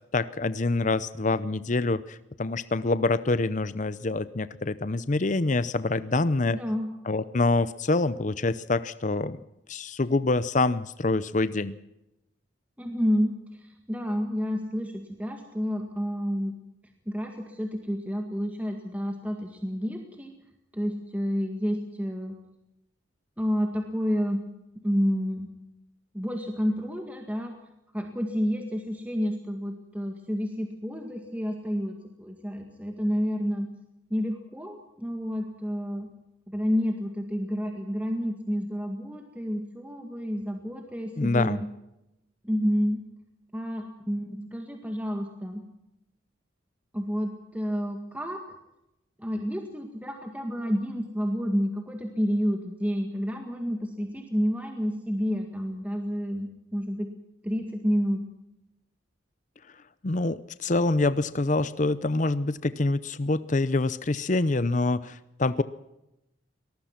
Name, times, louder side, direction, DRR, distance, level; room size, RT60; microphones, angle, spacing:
voice 1, 0.1-6.6 7.0-9.4 9.7-11.8 41.2-41.6 60.0-65.6, left 2 dB, 40° left, 15 dB, 0.7 m, -26 dB
voice 2, 6.5-6.9 12.8-13.3 13.9-14.9 15.2-16.5 17.1-20.3 20.7-22.3 23.4-24.4 24.8-25.5 26.1-27.5 27.9-33.7 34.1-36.1 36.5-41.7 42.4-43.0 43.5-45.6 46.9-48.4 49.2-57.1 57.4-58.2, equal, 10° right, 3 dB, 1.9 m, -29 dB
24.0 x 19.0 x 5.9 m, 0.89 s
head